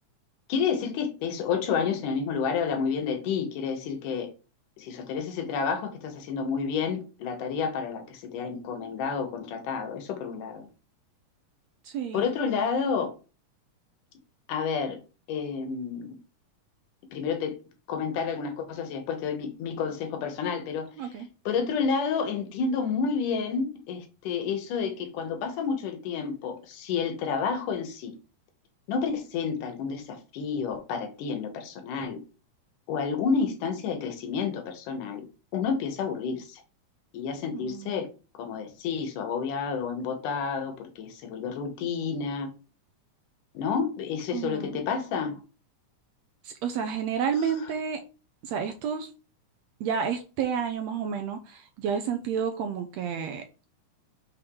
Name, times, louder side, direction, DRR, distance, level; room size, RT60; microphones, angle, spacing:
voice 1, 0.5-4.3 4.8-10.7 12.1-13.1 14.5-15.0 15.3-16.1 17.1-17.6 17.9-21.1 21.5-28.1 28.9-32.2 32.9-35.3 35.5-36.6 37.1-38.1 38.3-42.5 43.5-45.4, left 6 dB, 90° left, 2.6 m, -30 dB
voice 2, 11.8-12.3 21.0-21.3 37.5-38.0 44.3-44.8 46.4-48.0 48.4-49.1 49.8-53.4, right 7 dB, 80° right, 1.6 m, -30 dB
6.1 x 3.7 x 4.7 m
omnidirectional pair, 3.6 m